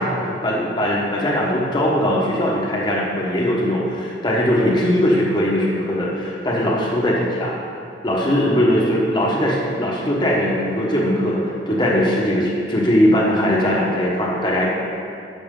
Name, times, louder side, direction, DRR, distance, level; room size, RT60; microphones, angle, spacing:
voice 1, 0.0-7.6 8.0-14.7, equal, 25° left, -4 dB, 1.1 m, -20 dB
12.0 x 6.1 x 3.7 m, 2.5 s
head